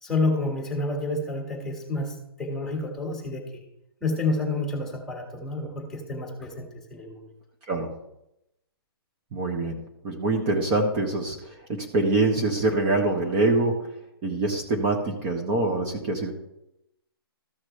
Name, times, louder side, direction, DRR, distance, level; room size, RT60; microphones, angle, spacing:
voice 1, 0.0-3.6 4.0-7.3, left 2 dB, 5° left, 0 dB, 1.9 m, -29 dB
voice 2, 9.3-13.9 14.2-16.3, right 2 dB, 25° right, 1 dB, 1.3 m, -25 dB
14.5 x 6.0 x 3.3 m, 0.84 s
hypercardioid pair, 150°, 13 cm